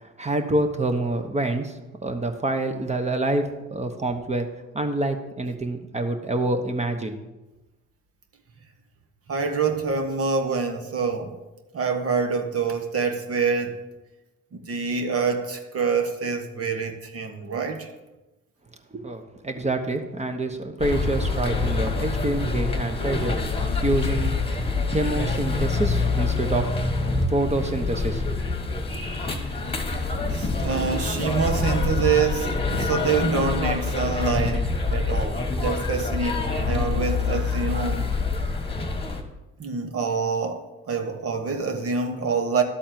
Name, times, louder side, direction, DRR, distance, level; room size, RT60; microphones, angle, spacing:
voice 1, 0.0-1.7 2.0-4.5 4.7-7.2 18.9-23.4 23.8-24.4 24.9-26.7 27.3-28.2, right 2 dB, 20° right, 7 dB, 1.1 m, -26 dB
voice 2, 9.3-11.4 11.7-13.8 14.5-17.9 30.3-38.1 39.6-40.6 40.9-42.6, right 5 dB, 50° right, 5 dB, 1.3 m, -26 dB
sound 1, 20.8-39.2, left 3 dB, 20° left, 1.4 m, -26 dB
12.0 x 4.2 x 7.5 m, 1.0 s
cardioid pair, 90°, 30 cm